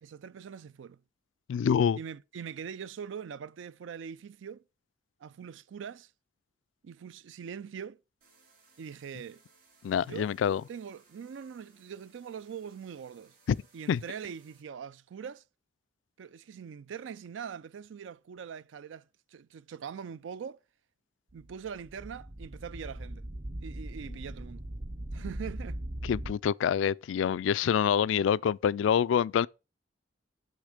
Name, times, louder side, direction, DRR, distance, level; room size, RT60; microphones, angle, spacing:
voice 1, 0.0-1.0 2.0-4.6 5.2-6.1 6.8-8.0 8.8-9.4 10.0-10.3 10.7-13.3 13.7-15.4 16.2-19.1 19.3-20.6 21.3-23.3 23.6-24.6 25.1-25.8, right 7 dB, 80° right, 0.4 m, -42 dB
voice 2, 1.5-2.0 9.8-10.6 13.5-13.6 13.9-14.0 26.0-29.5, left 8 dB, 80° left, 0.3 m, -26 dB
sound 1, 8.2-14.6, right 4 dB, 50° right, 4.5 m, -64 dB
sound 2, 21.3-26.3, right 1 dB, 25° right, 0.5 m, -40 dB
8.3 x 3.6 x 6.4 m
head